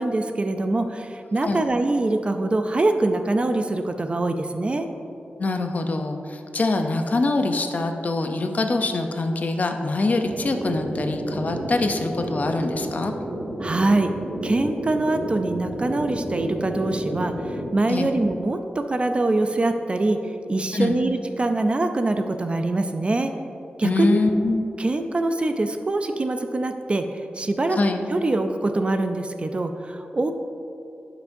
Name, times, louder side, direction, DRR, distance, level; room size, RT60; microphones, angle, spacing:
voice 1, 0.0-4.9 13.6-14.1 14.4-23.3 23.8-24.2 24.8-27.8 28.1-30.3, right 2 dB, 30° right, 7 dB, 0.4 m, -24 dB
voice 2, 5.4-13.1 17.9-18.1 20.7-21.0 23.8-24.6 27.7-28.0, left 2 dB, 45° left, 5 dB, 0.6 m, -24 dB
sound 1, 10.2-17.6, right 1 dB, 50° right, 1.7 m, -31 dB
11.5 x 5.9 x 2.6 m, 2.7 s
wide cardioid pair, 130°, 4 cm